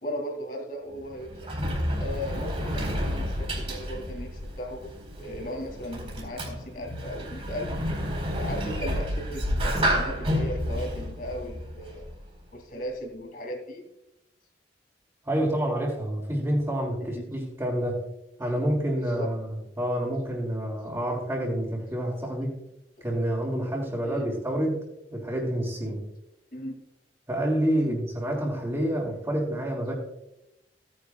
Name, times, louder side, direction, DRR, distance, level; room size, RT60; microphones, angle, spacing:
voice 1, 0.0-1.5 2.0-7.7 8.4-12.1 12.5-13.8 17.0-17.3 19.0-19.3 23.5-23.6 24.0-24.3 26.5-26.7 27.7-28.0, equal, 55° left, 1 dB, 2.8 m, -37 dB
Sliding door, 0.9-12.3, equal, 35° right, 3.9 m, -30 dB
voice 2, 15.2-18.0 18.4-22.6 23.0-24.8 25.1-26.0 27.3-29.9, right 1 dB, 20° right, -6 dB, 3.1 m, -28 dB
16.5 x 10.0 x 2.4 m, 0.84 s
head